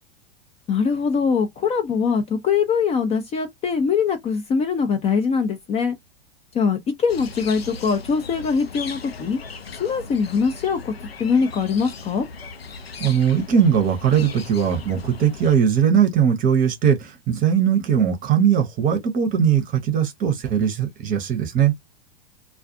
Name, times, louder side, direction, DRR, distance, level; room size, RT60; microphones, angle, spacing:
voice 1, 0.7-6.0 6.5-9.4 9.8-10.9 11.2-12.3, left 5 dB, 20° left, 0.5 m, -22 dB
sound 1, 7.1-15.6, left 4 dB, 90° left, 0.6 m, -38 dB
voice 2, 13.0-21.7, right 8 dB, 30° right, 0.8 m, -20 dB
2.3 x 2.3 x 2.6 m
figure-of-eight pair, 95°, 29 cm